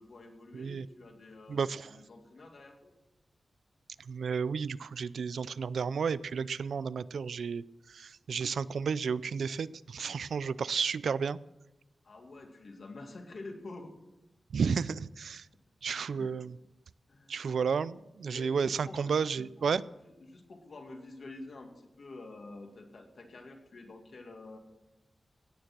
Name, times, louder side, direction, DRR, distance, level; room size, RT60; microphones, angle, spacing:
voice 1, 0.0-2.9 12.0-13.9 15.5-15.6 16.1-16.4 17.1-17.3 18.3-19.7 20.0-24.6, left 2 dB, 55° left, 3 dB, 2.3 m, -48 dB
voice 2, 0.5-0.8 1.5-1.9 4.1-7.6 7.9-11.4 14.5-15.4 15.8-16.5 17.3-19.8, right 6 dB, 90° right, 18 dB, 0.4 m, -32 dB
17.0 x 9.2 x 6.1 m, 0.97 s
wide cardioid pair, 160°, 0 cm